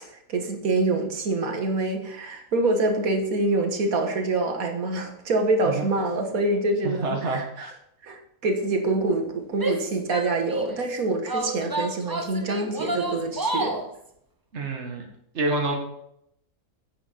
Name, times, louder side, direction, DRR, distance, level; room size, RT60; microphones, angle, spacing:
voice 1, 0.3-7.7 8.0-13.8, right 2 dB, 75° right, 4 dB, 1.9 m, -25 dB
voice 2, 6.8-7.7 14.5-15.1 15.3-15.8, right 2 dB, 50° right, 1 dB, 1.9 m, -28 dB
Female speech woman speaking / Yell, 9.5-10.8 11.3-13.9, right 2 dB, 20° right, 0.7 m, -30 dB
9.6 x 7.9 x 4.2 m, 0.74 s
omnidirectional pair, 1.5 m